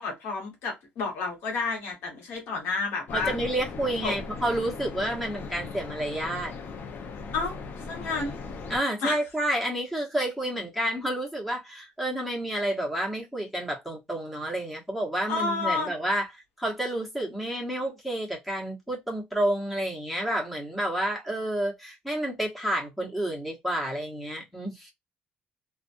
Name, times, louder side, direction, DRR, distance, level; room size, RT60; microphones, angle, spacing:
voice 1, 0.0-3.3 4.0-4.1 7.3-7.6 7.9-8.4 9.0-9.2 15.3-15.9, left 3 dB, 80° left, 1.2 m, -30 dB
sound 1, 3.1-8.8, left 4 dB, 55° left, 0.7 m, -38 dB
voice 2, 3.1-6.5 8.7-16.3 16.6-24.9, right 1 dB, ahead, 1.2 m, -30 dB
2.4 x 2.4 x 2.6 m
cardioid pair, 85°, 4 cm